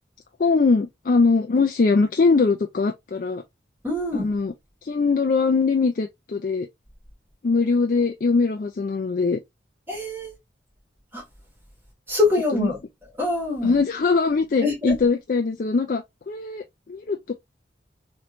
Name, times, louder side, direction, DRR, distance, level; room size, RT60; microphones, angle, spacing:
voice 1, 0.4-3.4 4.1-4.5 4.8-6.7 7.4-9.4 12.6-12.7 13.6-17.3, left 4 dB, 45° left, 0.4 m, -21 dB
voice 2, 3.8-4.3 9.9-10.4 11.1-11.2 12.1-12.8 13.2-13.7 14.6-15.0, left 2 dB, 10° right, 1.7 m, -24 dB
3.1 x 3.1 x 2.5 m
head